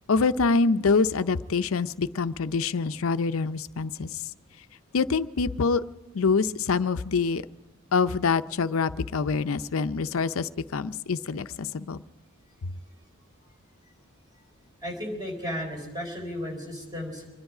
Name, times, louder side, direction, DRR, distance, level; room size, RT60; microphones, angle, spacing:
voice 1, 0.1-4.1 4.9-5.8 6.1-7.4 7.9-12.0, left 4 dB, 85° left, 12 dB, 0.5 m, -25 dB
voice 2, 14.8-17.2, equal, 20° right, 1 dB, 4.2 m, -34 dB
25.5 x 10.5 x 4.9 m, 1.1 s
head